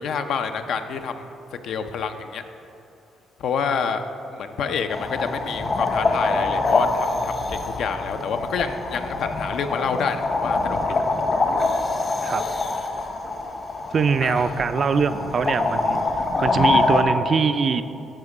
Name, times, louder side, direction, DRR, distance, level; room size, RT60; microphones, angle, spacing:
voice 1, 0.0-1.3 1.6-2.4 3.4-4.0 4.3-11.0 14.2-14.6, left 6 dB, 70° left, 8 dB, 0.5 m, -28 dB
sound 1, 4.9-17.0, left 3 dB, 45° left, 0.9 m, -24 dB
voice 2, 13.9-16.0 16.4-17.8, right 5 dB, 45° right, 11 dB, 0.3 m, -22 dB
12.0 x 4.5 x 4.8 m, 2.8 s
cardioid pair, 90°, 0 cm